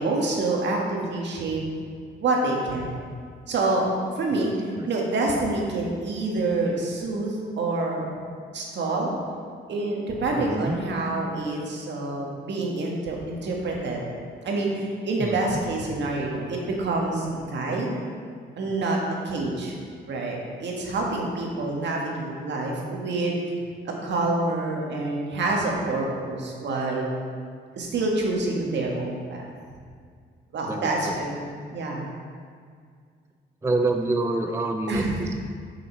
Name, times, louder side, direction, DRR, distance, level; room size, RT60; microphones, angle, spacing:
voice 1, 0.0-1.6 2.2-3.0 3.5-3.8 4.2-4.5 4.8-8.1 8.5-9.1 9.7-14.0 14.4-17.9 18.6-19.0 19.2-19.8 20.1-23.4 23.9-27.2 27.7-29.5 30.5-32.1 34.9-35.2, right 2 dB, 60° right, -1 dB, 1.7 m, -27 dB
voice 2, 4.3-4.9 10.4-10.8 15.2-15.6 18.7-18.8 30.7-31.2 33.6-35.3, right 2 dB, 15° right, 5 dB, 0.4 m, -28 dB
7.0 x 6.3 x 4.5 m, 2.1 s
cardioid pair, 90°, 20 cm